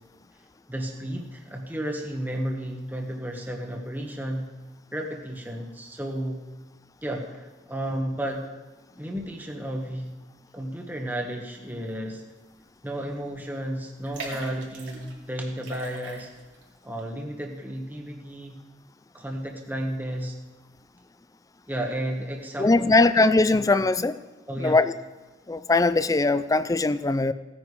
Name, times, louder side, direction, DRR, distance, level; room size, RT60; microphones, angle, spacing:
voice 1, 0.7-4.5 4.9-6.4 7.0-8.4 9.0-10.1 10.5-12.2 12.8-16.3 16.8-18.5 19.1-20.3 21.7-22.9 23.5-23.6 24.5-24.8, right 1 dB, 10° right, 1 dB, 1.2 m, -32 dB
sound 1, 12.7-12.9 13.2-13.3 14.0-15.2 15.6-16.6 17.0-17.1, right 2 dB, 80° right, 3.3 m, -39 dB
voice 2, 22.6-24.2 24.6-24.9 25.5-27.3, left 3 dB, 20° left, 14 dB, 0.4 m, -21 dB
17.5 x 9.7 x 4.8 m, 1.2 s
head